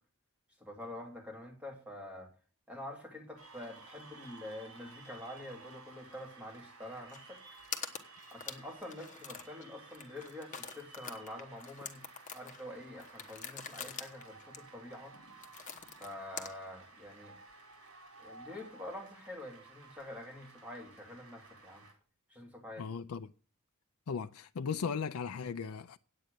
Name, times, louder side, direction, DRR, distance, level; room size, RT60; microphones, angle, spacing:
voice 1, 0.6-2.3 2.7-7.4 8.3-12.0 12.3-15.2 16.0-17.4 18.2-21.9 22.3-22.9, left 1 dB, 5° right, 2.9 m, -46 dB
Cheering / Applause, 3.4-21.9, right 3 dB, 90° right, 4.3 m, -55 dB
sound 1, 7.1-7.2 7.5-9.6 9.9-16.5, left 6 dB, 35° left, 1.2 m, -45 dB
voice 2, 22.8-23.3 24.1-26.0, left 6 dB, 80° left, 0.5 m, -37 dB
9.2 x 8.8 x 6.6 m
head